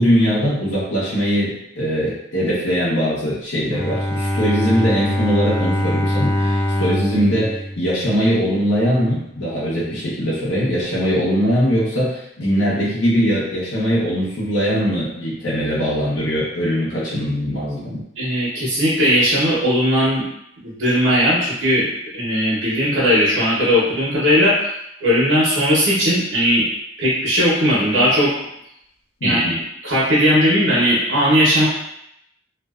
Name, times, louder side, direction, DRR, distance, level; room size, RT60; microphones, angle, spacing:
voice 1, 0.0-18.0 29.2-29.6, equal, 90° left, -8 dB, 0.8 m, -21 dB
Bowed string instrument, 3.7-8.7, left 1 dB, 30° left, 0.6 m, -23 dB
voice 2, 18.2-20.2 20.6-21.9 22.1-24.7 25.0-26.6 27.0-28.3 29.2-29.6 29.8-31.7, equal, 85° right, -7 dB, 0.9 m, -17 dB
2.5 x 2.1 x 2.3 m, 0.76 s
head